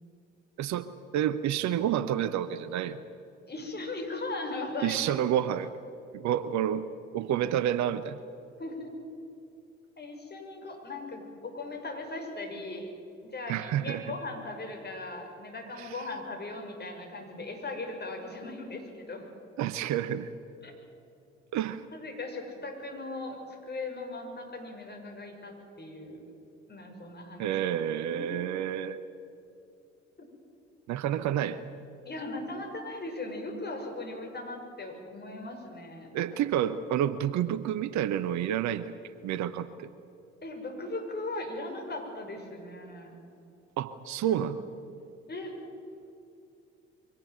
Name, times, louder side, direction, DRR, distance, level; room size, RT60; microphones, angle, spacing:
voice 1, 1.1-3.0 4.8-5.7 6.1-6.9 7.1-8.2 13.5-14.0 15.8-15.9 19.6-20.3 21.5-21.8 27.4-29.0 30.9-31.6 36.1-38.9 39.2-39.9 43.8-44.6, right 10 dB, 55° right, 14 dB, 1.0 m, -29 dB
voice 2, 3.5-5.0 8.6-8.9 10.0-12.9 13.2-19.2 20.6-20.7 21.9-26.2 26.7-27.6 28.2-28.5 32.0-36.3 40.4-43.2 44.2-44.4 45.3-45.5, left 2 dB, 30° left, 2 dB, 6.0 m, -38 dB
23.5 x 18.0 x 9.2 m, 2.6 s
figure-of-eight pair, 50°, 34 cm